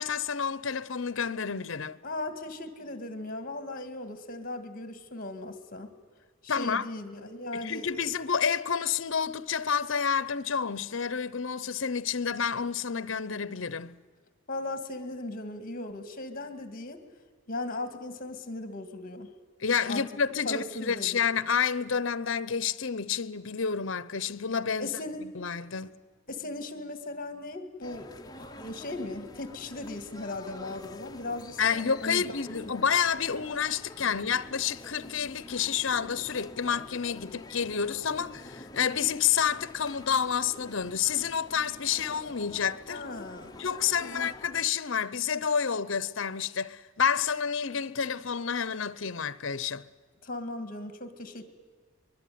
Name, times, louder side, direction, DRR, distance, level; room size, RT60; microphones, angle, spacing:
voice 1, 0.0-2.0 6.5-6.9 7.5-14.0 19.6-25.9 31.6-43.0 43.6-49.8, left 7 dB, 60° left, 0.8 m, -29 dB
voice 2, 2.0-5.9 6.4-8.0 14.5-17.0 17.5-19.3 19.9-20.0 20.5-21.3 24.8-25.2 26.3-28.1 28.4-32.6 34.0-34.2 42.9-43.6 44.0-44.3 50.2-51.4, left 2 dB, 40° left, 2.0 m, -38 dB
sound 1, 27.8-44.7, left 2 dB, 20° left, 0.8 m, -47 dB
24.0 x 22.0 x 9.4 m
head